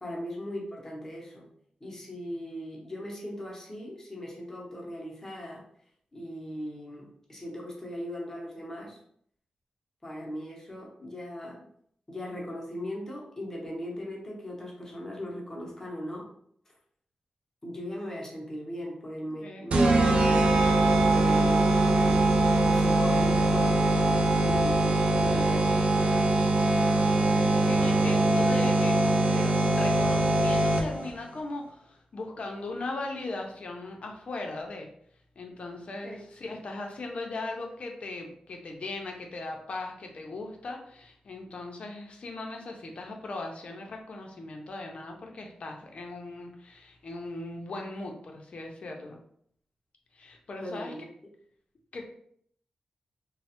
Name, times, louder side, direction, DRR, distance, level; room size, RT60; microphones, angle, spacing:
voice 1, 0.0-1.5 1.8-5.6 6.1-9.0 10.0-11.7 12.1-16.3 17.6-20.5 21.0-26.2 36.0-36.2 50.6-51.0, equal, 20° left, -2 dB, 0.7 m, -39 dB
sound 1, 19.7-31.1, right 2 dB, 55° right, 0.3 m, -22 dB
voice 2, 26.9-29.0 29.3-34.9 35.4-49.2 50.1-50.9 51.9-52.1, left 2 dB, 55° left, 2 dB, 0.5 m, -38 dB
3.1 x 2.0 x 2.8 m, 0.65 s
wide cardioid pair, 165°, 3 cm